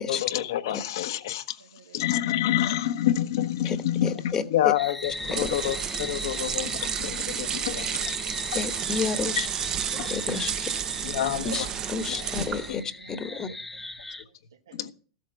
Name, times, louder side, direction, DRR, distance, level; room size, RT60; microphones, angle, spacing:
voice 1, 0.0-1.6 1.9-8.0 8.5-8.6 9.4-9.5 10.0-10.1 11.0-11.7 12.1-12.3 12.7-12.8 14.7-14.9, left 12 dB, 65° left, 1.1 m, -28 dB
voice 2, 1.6-2.1 4.2-4.4 6.3-6.6 7.5-8.8 10.7-11.6 12.6-13.9 14.1-14.9, right 6 dB, 80° right, 1.3 m, -51 dB
voice 3, 4.3-4.7 5.3-5.6 8.5-9.5 10.0-10.7 11.4-13.5, left 5 dB, 25° left, 1.2 m, -31 dB
sound 1, 4.7-14.2, left 2 dB, 5° left, 0.9 m, -39 dB
sound 2, 5.0-12.8, right 9 dB, 30° right, 0.7 m, -31 dB
13.5 x 8.1 x 5.4 m
hypercardioid pair, 105°, 2 cm